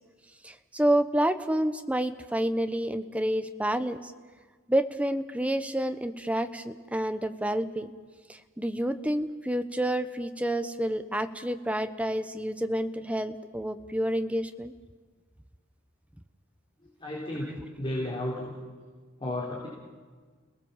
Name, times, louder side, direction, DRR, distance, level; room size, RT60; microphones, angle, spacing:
voice 1, 0.4-4.1 4.7-7.9 8.3-14.7, right 1 dB, 5° right, 9 dB, 0.9 m, -29 dB
voice 2, 17.0-18.5 19.2-19.7, left 1 dB, 25° left, -4 dB, 4.3 m, -33 dB
30.0 x 19.0 x 7.4 m, 1.5 s
head